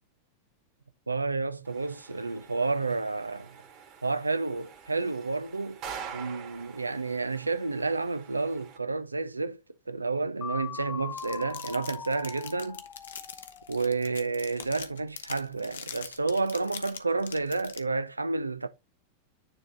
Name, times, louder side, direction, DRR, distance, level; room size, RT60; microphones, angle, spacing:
voice 1, 1.1-3.5 4.0-5.8 6.1-9.6 9.9-12.8 13.7-18.7, right 3 dB, 80° right, 0.5 m, -30 dB
sound 1, 1.6-8.8, right 7 dB, 35° right, 1.7 m, -46 dB
sound 2, 10.4-14.3, left 7 dB, 25° left, 0.4 m, -41 dB
sound 3, 11.2-17.8, left 8 dB, 65° left, 0.9 m, -42 dB
9.7 x 3.7 x 3.2 m
figure-of-eight pair, 90°, 0 cm